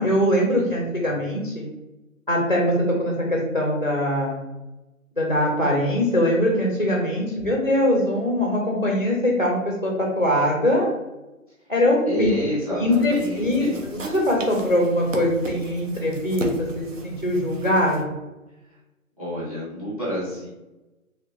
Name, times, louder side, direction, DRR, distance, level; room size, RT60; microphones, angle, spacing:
voice 1, 0.0-1.7 2.3-2.7 3.0-4.4 5.2-10.9 11.7-12.3 12.8-13.7 14.0-18.1, left 1 dB, 40° left, -1 dB, 0.5 m, -22 dB
voice 2, 12.1-13.8 15.9-16.0 19.2-20.5, equal, 25° right, -6 dB, 0.8 m, -29 dB
sound 1, 12.9-18.0, right 2 dB, 60° right, 0.7 m, -36 dB
3.0 x 2.4 x 3.0 m, 1.0 s
hypercardioid pair, 180°, 42 cm